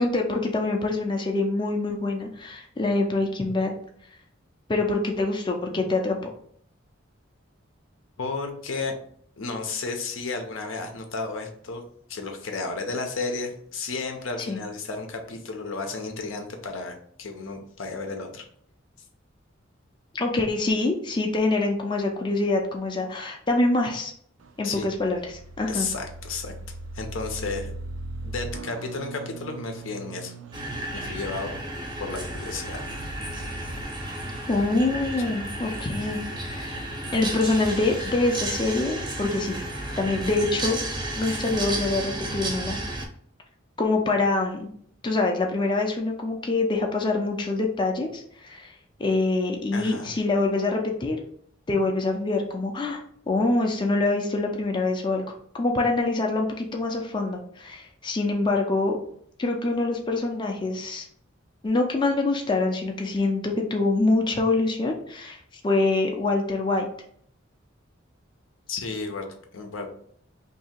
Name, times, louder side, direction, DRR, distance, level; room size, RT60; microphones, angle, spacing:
voice 1, 0.0-3.7 4.7-6.3 14.4-14.6 20.1-24.1 24.6-25.9 34.5-36.8 37.1-39.6 40.0-40.8 41.2-42.8 43.8-44.7 45.0-48.7 49.0-51.2 51.7-55.2 55.5-59.0 59.4-61.1 61.6-65.4 65.6-66.9, left 2 dB, 25° left, 2 dB, 0.4 m, -25 dB
voice 2, 8.2-8.9 9.4-11.8 12.1-16.9 17.2-18.4 24.6-24.9 25.7-26.5 26.9-27.7 28.2-30.3 30.9-31.6 32.0-32.9 35.2-35.3 49.7-50.1 68.7-69.3 69.5-69.9, left 3 dB, 80° left, 4 dB, 0.7 m, -32 dB
sound 1, 24.4-33.8, right 2 dB, 75° right, 0.4 m, -40 dB
sound 2, 30.5-43.0, right 1 dB, 20° right, 0.6 m, -33 dB
2.8 x 2.7 x 4.2 m, 0.63 s
head